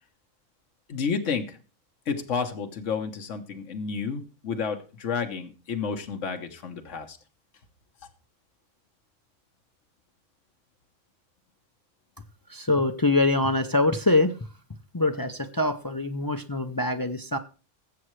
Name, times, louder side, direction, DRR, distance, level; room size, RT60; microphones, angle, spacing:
voice 1, 0.9-1.6 2.1-7.2, left 5 dB, 75° left, 4 dB, 1.4 m, -31 dB
voice 2, 12.5-14.3 14.9-17.4, left 2 dB, 25° left, 7 dB, 0.4 m, -24 dB
20.5 x 7.5 x 3.2 m, 0.35 s
omnidirectional pair, 1.3 m